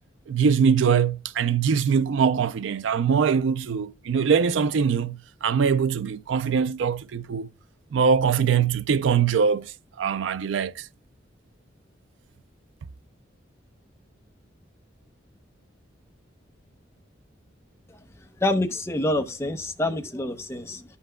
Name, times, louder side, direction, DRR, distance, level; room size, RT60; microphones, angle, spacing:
voice 1, 0.3-7.5 7.9-10.9, right 6 dB, 80° right, 0.4 m, -22 dB
voice 2, 18.4-20.8, left 1 dB, 15° left, 0.7 m, -26 dB
12.5 x 5.7 x 2.2 m
head